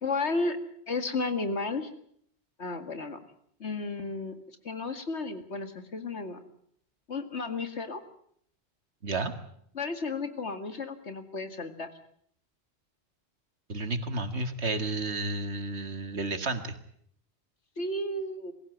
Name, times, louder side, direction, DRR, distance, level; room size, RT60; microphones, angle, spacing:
voice 1, 0.0-0.6 0.9-1.9 2.6-3.2 3.6-4.3 4.6-6.4 7.1-8.0 9.7-11.9 17.8-18.5, left 3 dB, 75° left, 8 dB, 2.5 m, -33 dB
voice 2, 9.0-9.3 13.7-16.7, right 2 dB, 75° right, 9 dB, 2.2 m, -31 dB
24.0 x 15.5 x 9.3 m, 0.67 s
omnidirectional pair, 1.1 m